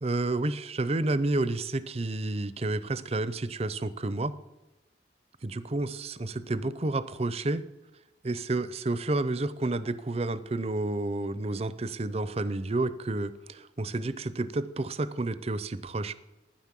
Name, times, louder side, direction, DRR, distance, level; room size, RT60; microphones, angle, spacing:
voice 1, 0.0-4.3 5.4-7.7 8.2-16.1, right 2 dB, 35° right, 16 dB, 0.6 m, -30 dB
13.0 x 9.8 x 7.5 m, 1.0 s
head